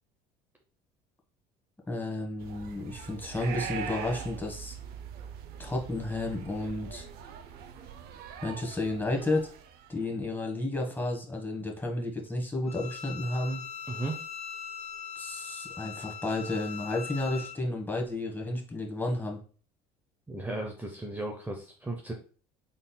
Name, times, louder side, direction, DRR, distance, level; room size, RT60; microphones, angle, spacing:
voice 1, 1.9-4.7 5.6-7.0 8.4-9.5 9.9-13.6 15.2-19.4, left 2 dB, 10° left, 1 dB, 1.2 m, -32 dB
sound 1, 2.4-10.0, right 7 dB, 65° right, 0.5 m, -42 dB
Bowed string instrument, 12.7-17.6, left 7 dB, 40° left, 0.5 m, -41 dB
voice 2, 13.9-14.2 20.3-22.1, right 2 dB, 10° right, 1 dB, 0.7 m, -35 dB
3.8 x 3.7 x 2.2 m, 0.40 s
supercardioid pair, 80°, 17 cm